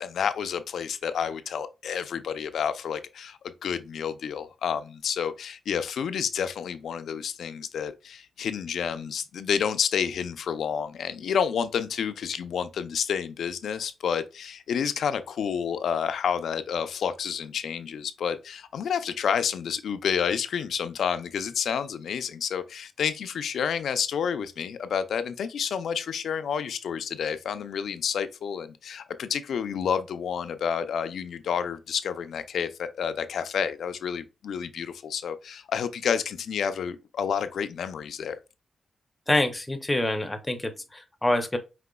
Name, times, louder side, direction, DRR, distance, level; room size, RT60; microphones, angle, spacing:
voice 1, 0.0-38.4, left 7 dB, 70° left, 0.4 m, -29 dB
voice 2, 39.3-41.6, left 1 dB, 10° left, 0.5 m, -26 dB
5.0 x 3.7 x 2.2 m
wide cardioid pair, 170°, 0 cm